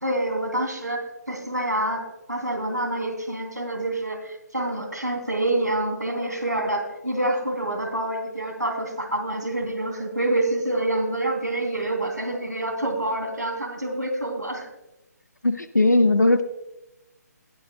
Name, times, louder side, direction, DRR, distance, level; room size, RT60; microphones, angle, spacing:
voice 1, 0.0-2.0 2.3-14.7, right 1 dB, 90° right, 2 dB, 3.0 m, -27 dB
voice 2, 15.4-16.4, left 2 dB, 80° left, 11 dB, 1.1 m, -18 dB
19.5 x 8.7 x 2.3 m, 0.95 s
figure-of-eight pair, 140°, 9 cm